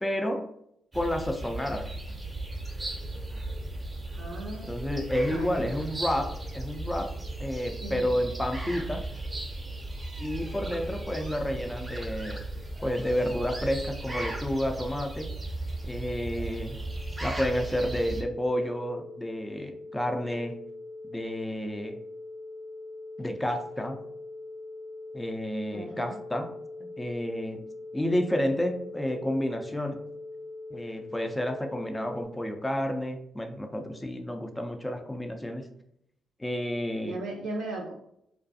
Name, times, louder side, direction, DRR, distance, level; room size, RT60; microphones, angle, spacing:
voice 1, 0.0-0.5 0.9-1.9 4.7-7.1 7.4-9.1 10.2-12.4 12.8-15.3 15.8-16.8 17.2-20.6 21.1-22.0 23.2-24.0 25.1-26.5 26.8-27.6 27.9-30.0 30.7-35.7 36.4-37.2, equal, 15° left, 5 dB, 0.4 m, -30 dB
sound 1, 0.9-18.2, right 2 dB, 25° right, 0.7 m, -36 dB
voice 2, 4.2-4.7 5.3-5.7 7.6-8.1 25.7-26.1 37.0-37.9, right 2 dB, 80° right, -2 dB, 0.5 m, -37 dB
sound 2, 15.3-32.2, left 2 dB, 80° left, 0.7 m, -43 dB
2.4 x 2.2 x 2.6 m, 0.73 s
hypercardioid pair, 50°, 0 cm